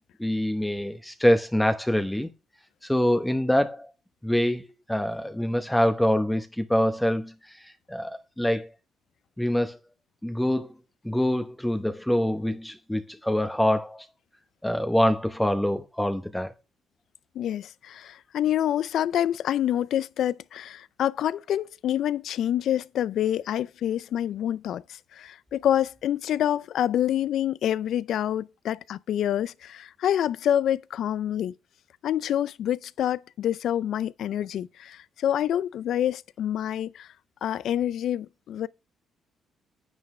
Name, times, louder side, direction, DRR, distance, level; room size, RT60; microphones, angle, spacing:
voice 1, 0.2-2.3 2.8-3.9 4.2-7.3 7.9-8.7 9.4-9.8 10.2-10.7 11.0-14.0 14.6-16.5, left 1 dB, 5° left, 0.9 m, -25 dB
voice 2, 17.3-31.5 32.0-37.1 37.4-38.7, left 11 dB, 70° left, 0.4 m, -27 dB
9.6 x 8.7 x 3.2 m
cardioid pair, 90°, 0 cm